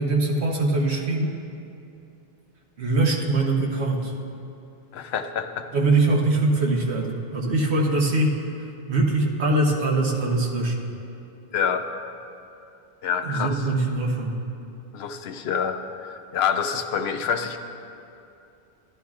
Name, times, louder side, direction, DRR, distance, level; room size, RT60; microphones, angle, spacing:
voice 1, 0.0-1.3 2.8-4.1 5.7-8.4 8.9-10.9 13.2-14.3, right 2 dB, 85° right, 0 dB, 1.3 m, -22 dB
voice 2, 4.9-5.7 11.5-11.9 13.0-13.6 14.9-17.6, left 7 dB, 75° left, 7 dB, 0.8 m, -27 dB
13.0 x 11.0 x 2.4 m, 2.7 s
omnidirectional pair, 1.1 m